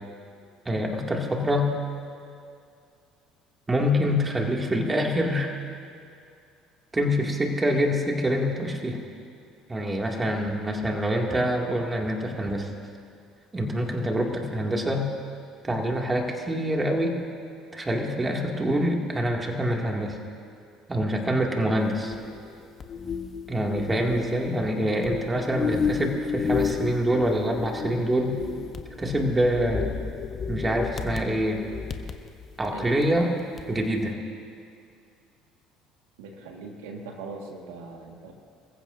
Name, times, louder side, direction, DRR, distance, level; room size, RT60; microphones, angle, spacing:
voice 1, 0.7-1.7 3.7-5.5 6.9-9.0 9.7-12.7 13.5-15.1 15.6-17.2 17.7-20.2 20.9-22.1 23.5-28.4 29.0-29.8 30.5-31.6 32.6-33.3 33.7-34.2, equal, 20° right, 0 dB, 2.5 m, -25 dB
sound 1, 21.8-33.2 33.6-33.9, left 6 dB, 40° left, 1.1 m, -32 dB
voice 2, 36.2-38.3, right 3 dB, 80° right, 1 dB, 1.8 m, -40 dB
27.0 x 15.0 x 2.7 m, 2.4 s
hypercardioid pair, 70°, 0 cm